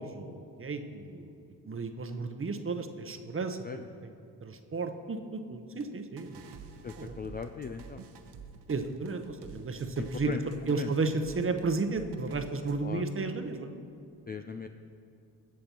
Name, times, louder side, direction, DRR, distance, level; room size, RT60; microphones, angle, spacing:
voice 1, 0.0-3.6 4.0-4.1 4.4-7.2 8.7-10.3 10.7-13.7, right 3 dB, 25° right, 7 dB, 0.9 m, -33 dB
sound 1, 5.8-5.9 6.2-11.6 12.0-12.7, right 5 dB, 55° right, 1.1 m, -49 dB
voice 2, 6.8-8.0 10.0-10.4 10.8-10.9 12.8-13.0 14.3-14.7, left 5 dB, 20° left, 7 dB, 0.4 m, -38 dB
19.0 x 7.5 x 2.9 m, 2.5 s
hypercardioid pair, 50°, 49 cm